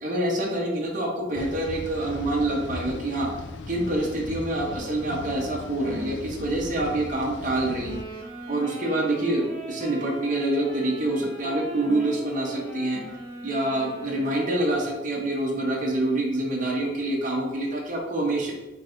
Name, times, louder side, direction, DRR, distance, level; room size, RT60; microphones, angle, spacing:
voice 1, 0.0-3.3 3.7-7.9 8.5-13.0 13.4-18.5, right 1 dB, 45° right, -2 dB, 0.9 m, -26 dB
sound 1, 1.3-8.0, left 2 dB, 75° left, 0.4 m, -38 dB
sound 2, 7.8-14.8, right 2 dB, 20° left, 1.4 m, -38 dB
5.2 x 3.3 x 2.6 m, 1.0 s
head